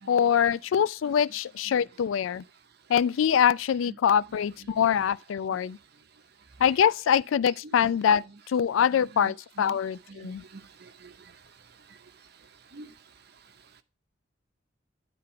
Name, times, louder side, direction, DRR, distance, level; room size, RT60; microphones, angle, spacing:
voice 1, 0.1-2.4 2.9-5.8 6.6-10.4, left 8 dB, 85° left, 0.3 m, -24 dB
voice 2, 9.2-9.8 10.1-11.4 11.9-12.0 12.7-12.9, right 3 dB, 55° right, 0.7 m, -47 dB
10.5 x 3.5 x 5.7 m
head